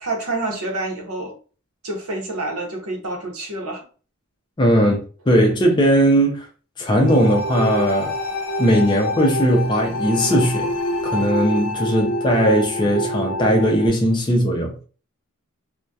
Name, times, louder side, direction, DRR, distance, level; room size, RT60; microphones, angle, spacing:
voice 1, 0.0-1.4 1.8-3.9, right 2 dB, 80° right, 0.7 m, -28 dB
voice 2, 4.6-6.4 6.8-8.1 8.6-10.7 11.0-14.7, equal, 20° left, 0.4 m, -18 dB
sound 1, 7.1-13.9, equal, 70° left, 0.6 m, -26 dB
2.6 x 2.1 x 2.2 m
head